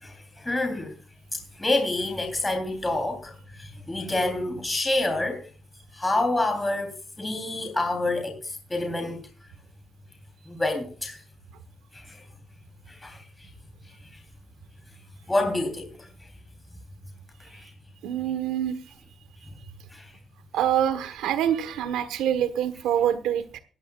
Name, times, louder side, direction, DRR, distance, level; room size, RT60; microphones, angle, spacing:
voice 1, 0.0-0.9 1.6-5.5 5.9-9.2 10.5-11.2 11.9-12.2 12.9-13.5 15.3-16.1 17.4-17.7 19.9-20.1, left 2 dB, 15° left, 3.2 m, -28 dB
voice 2, 18.0-18.8 20.5-23.6, right 10 dB, 90° right, 1.2 m, -25 dB
17.0 x 14.0 x 2.4 m
cardioid pair, 90°, 0 cm